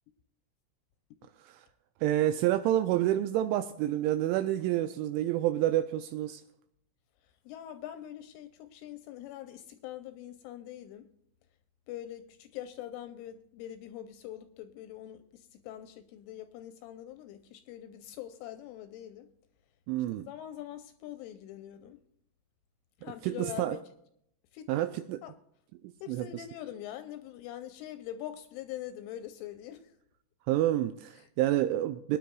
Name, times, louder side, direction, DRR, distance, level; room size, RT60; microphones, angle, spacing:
voice 1, 2.0-6.4 19.9-20.3 23.2-23.8 24.7-25.2 26.1-26.4 30.5-32.2, right 13 dB, 85° right, 2.7 m, -28 dB
voice 2, 7.5-11.1 11.9-19.3 20.3-22.0 23.0-23.8 24.5-24.7 25.2-25.3 26.0-29.9, left 12 dB, 85° left, 2.9 m, -43 dB
22.5 x 10.0 x 2.3 m
omnidirectional pair, 6.0 m